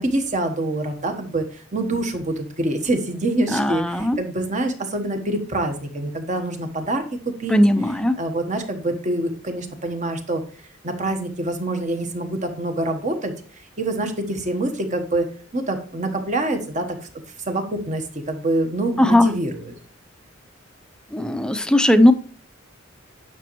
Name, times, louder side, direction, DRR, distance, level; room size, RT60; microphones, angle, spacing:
voice 1, 0.0-7.6 8.2-10.4 10.8-13.3 13.8-15.3 15.5-17.1 17.5-19.7, right 2 dB, 40° right, 6 dB, 1.2 m, -25 dB
voice 2, 3.5-4.2 7.5-8.2 19.0-19.3 21.1-22.1, left 1 dB, 5° left, 9 dB, 0.5 m, -17 dB
9.9 x 6.1 x 3.0 m, 0.43 s
head